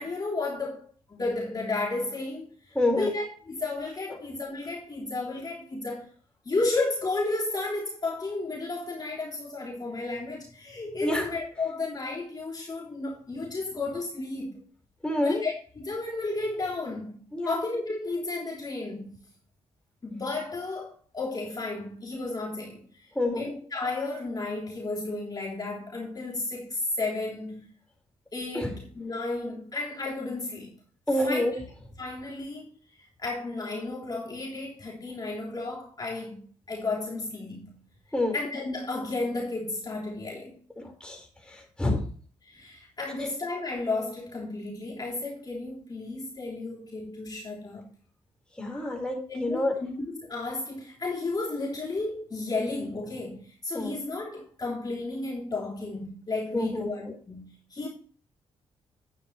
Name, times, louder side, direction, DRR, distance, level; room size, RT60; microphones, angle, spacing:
voice 1, 0.0-6.1 6.4-14.6 15.2-19.1 20.0-22.8 23.3-27.7 28.3-30.7 31.1-31.5 32.0-32.7 33.2-37.7 38.3-40.6 42.4-47.9 49.3-57.9, left 3 dB, 35° left, 3.3 m, -33 dB
voice 2, 2.7-3.1 4.1-4.2 11.0-11.3 15.0-15.4 17.3-17.6 23.1-23.5 28.5-28.7 31.1-31.5 38.1-38.3 40.8-42.1 43.2-43.3 48.6-49.7 53.7-54.0 56.5-57.1, left 1 dB, 10° left, 4.8 m, -28 dB
11.0 x 9.2 x 3.2 m
cardioid pair, 70°, 12 cm